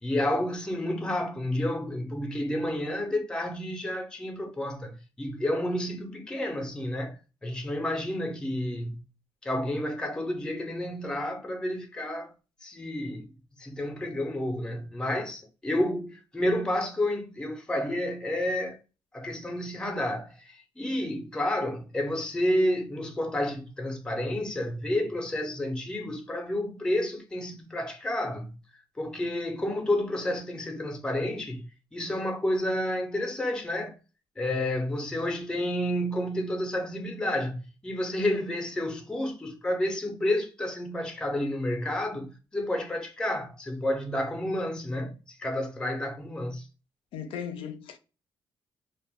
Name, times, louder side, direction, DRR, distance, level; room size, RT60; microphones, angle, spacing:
voice 1, 0.0-9.0 9.4-12.3 12.6-13.3 13.6-18.8 19.1-28.6 29.0-31.6 31.9-34.0 34.4-46.7, left 1 dB, 10° left, 0.4 m, -30 dB
voice 2, 47.1-48.0, left 8 dB, 90° left, 0.4 m, -37 dB
2.1 x 2.1 x 3.3 m
cardioid pair, 120°, 9 cm